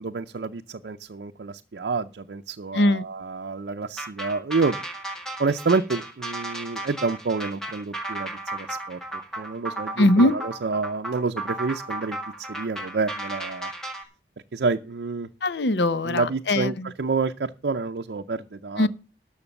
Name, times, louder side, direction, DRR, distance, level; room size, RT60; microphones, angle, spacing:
voice 1, 0.0-4.8 5.4-9.0 9.4-13.7 14.5-15.3 16.0-18.9, right 4 dB, 75° right, 0.5 m, -28 dB
sound 1, 4.0-14.0, right 2 dB, 5° left, 1.6 m, -34 dB
voice 2, 10.0-10.3 15.4-16.7 18.8-18.9, left 1 dB, 80° left, 0.7 m, -20 dB
12.5 x 6.5 x 7.0 m
head